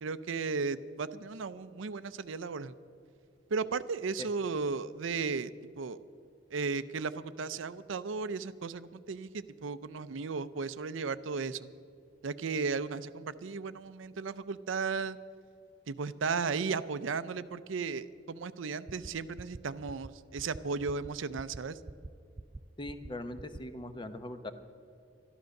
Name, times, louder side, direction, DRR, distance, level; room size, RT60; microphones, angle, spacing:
voice 1, 0.0-2.7 3.5-5.5 5.8-6.0 6.5-11.7 12.2-15.2 15.9-21.8, right 4 dB, 85° right, 14 dB, 0.5 m, -35 dB
sound 1, 18.9-19.1 19.4-19.6 19.9-20.1 20.4-20.6 20.9-21.1 21.4-21.6 21.9-22.1 22.4-22.6 22.9-23.1 23.4-23.6, right 2 dB, 20° right, 0.3 m, -44 dB
voice 2, 22.8-24.5, left 1 dB, 25° left, 9 dB, 0.8 m, -41 dB
12.5 x 12.0 x 6.4 m, 2.4 s
head